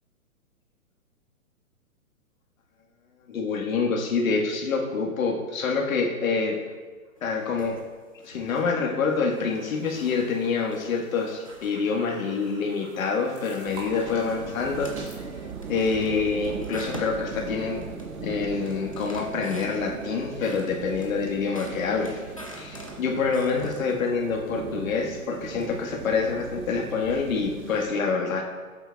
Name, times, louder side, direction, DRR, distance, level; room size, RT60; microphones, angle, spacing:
voice 1, 3.3-6.6 7.2-7.8 8.2-14.9 15.7-17.8 18.2-28.4, left 4 dB, 65° left, 1 dB, 1.5 m, -26 dB
sound 1, 7.2-7.9 8.2-8.7 9.1-9.5 9.9-12.1 12.5-12.8 13.2-13.7 14.0-14.4 14.7-15.3 15.6-18.2 18.4-20.0 20.4-24.0, equal, 25° left, 0.4 m, -46 dB
sound 2, 9.4-15.2, right 2 dB, 25° right, 1.7 m, -47 dB
sound 3, 13.6-27.9, right 5 dB, 80° right, 1.3 m, -39 dB
17.0 x 7.9 x 2.3 m, 1.4 s
hypercardioid pair, 175°, 43 cm